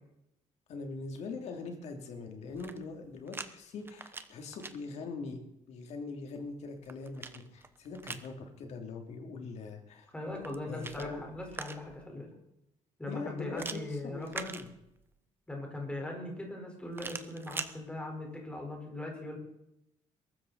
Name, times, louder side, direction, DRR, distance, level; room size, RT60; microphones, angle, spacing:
voice 1, 0.7-5.4 5.7-10.1 10.6-11.2 13.1-14.7, left 4 dB, 60° left, 3 dB, 3.2 m, -42 dB
sound 1, 2.4-3.5 3.8-4.7 6.4-8.3 10.3-12.1 13.6-15.1 16.9-17.7, right 4 dB, 15° right, 1.0 m, -43 dB
voice 2, 10.1-12.3 13.0-14.5 15.5-19.4, left 1 dB, 10° left, 1 dB, 4.7 m, -40 dB
22.0 x 13.0 x 4.2 m, 0.83 s
cardioid pair, 155°, 13 cm